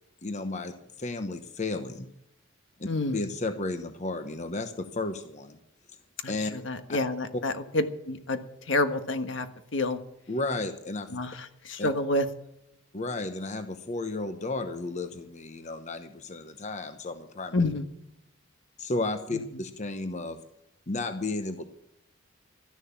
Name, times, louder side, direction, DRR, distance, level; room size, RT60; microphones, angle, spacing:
voice 1, 0.2-2.1 2.8-5.6 6.3-6.5 10.3-11.1 11.8-11.9 12.9-17.5 18.8-20.4 20.9-21.6, left 2 dB, 35° left, 8 dB, 1.0 m, -33 dB
voice 2, 2.9-3.2 6.2-9.5 9.7-10.0 11.1-12.3 17.5-17.9 19.3-19.6, left 2 dB, 70° left, 9 dB, 1.4 m, -29 dB
13.0 x 10.5 x 7.2 m, 0.77 s
head